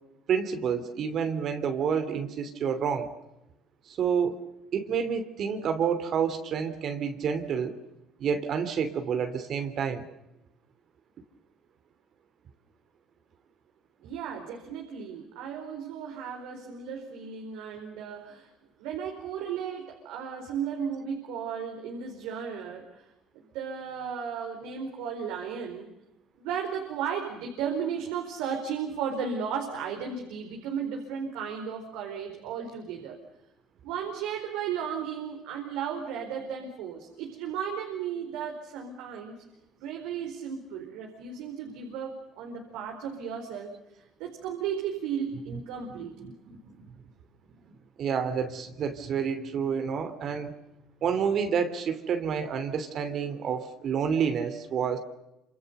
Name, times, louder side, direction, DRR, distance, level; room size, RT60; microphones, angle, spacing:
voice 1, 0.3-3.1 3.9-4.4 4.7-7.7 8.2-10.0 46.2-46.3 46.8-46.9 48.0-50.5 51.0-55.0, right 7 dB, 55° right, 8 dB, 3.0 m, -29 dB
voice 2, 14.0-18.5 18.8-23.0 23.3-25.9 26.4-33.2 33.8-39.4 39.8-46.2, right 7 dB, 80° right, 2 dB, 4.4 m, -35 dB
27.0 x 27.0 x 6.8 m, 0.93 s
supercardioid pair, 90°, 0 cm